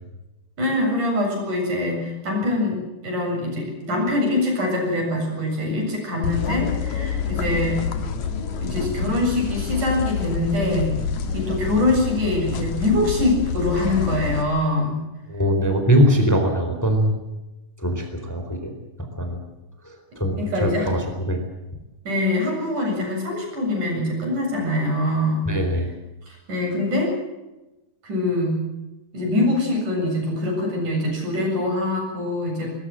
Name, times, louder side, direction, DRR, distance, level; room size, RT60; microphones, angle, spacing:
voice 1, 0.6-7.8 8.6-11.0 11.3-15.0 20.4-20.9 22.1-25.5 26.3-27.1 28.0-28.6 29.1-32.7, left 2 dB, 75° right, 1 dB, 9.1 m, -23 dB
sound 1, 6.2-14.4, left 6 dB, 70° left, 3.3 m, -27 dB
voice 2, 15.3-17.1 17.8-18.7 19.1-19.4 19.8-21.0 21.3-21.4 25.5-25.9, equal, 5° left, 5 dB, 3.8 m, -21 dB
21.0 x 21.0 x 7.7 m, 1.0 s
omnidirectional pair, 3.6 m